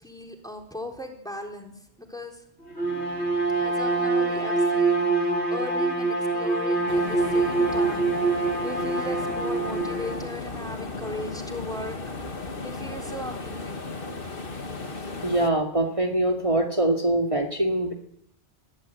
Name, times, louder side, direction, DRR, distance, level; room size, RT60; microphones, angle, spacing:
voice 1, 0.0-2.4 3.6-12.0 12.6-13.9, left 1 dB, 5° left, 2 dB, 3.9 m, -38 dB
Bowed string instrument, 2.7-10.3, right 3 dB, 80° left, 3.4 m, -25 dB
sound 1, 6.9-15.5, left 3 dB, 55° left, 2.0 m, -36 dB
voice 2, 15.2-17.9, right 1 dB, 30° right, 0 dB, 2.3 m, -23 dB
22.5 x 15.0 x 8.5 m, 0.74 s
omnidirectional pair, 1.1 m